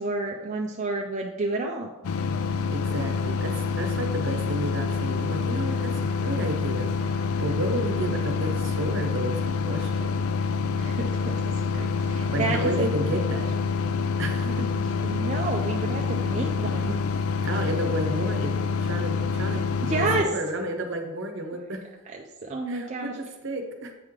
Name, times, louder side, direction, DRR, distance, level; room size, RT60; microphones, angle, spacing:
voice 1, 0.0-1.9 8.1-8.2 10.7-11.4 11.7-13.2 14.4-14.5 15.0-16.9 19.8-20.3 22.4-23.2, right 3 dB, 35° right, 0 dB, 0.4 m, -30 dB
sound 1, 2.0-20.2, left 5 dB, 80° left, 0.3 m, -27 dB
voice 2, 2.7-10.2 12.3-13.5 14.2-14.7 17.4-21.8 22.7-23.9, right 1 dB, 60° right, 5 dB, 0.8 m, -32 dB
8.4 x 3.6 x 3.2 m, 1.1 s
head